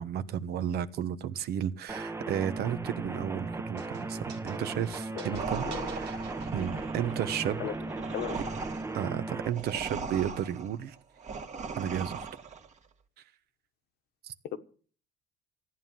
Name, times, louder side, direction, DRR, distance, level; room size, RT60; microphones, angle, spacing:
voice 1, 0.0-6.2 6.5-7.7 8.3-8.4 8.9-11.0 11.8-12.3 14.2-14.3, right 10 dB, 70° right, 1.1 m, -33 dB
sound 1, 1.9-9.5, right 2 dB, 15° right, 0.8 m, -37 dB
sound 2, 3.8-7.1, right 8 dB, 90° right, 2.4 m, -51 dB
voice 2, 5.1-5.8 7.6-7.7 8.1-8.4 14.4-14.6, left 10 dB, 80° left, 1.4 m, -36 dB
sound 3, 5.3-12.7, right 4 dB, 45° right, 1.9 m, -39 dB
15.0 x 9.6 x 7.4 m
cardioid pair, 110°, 17 cm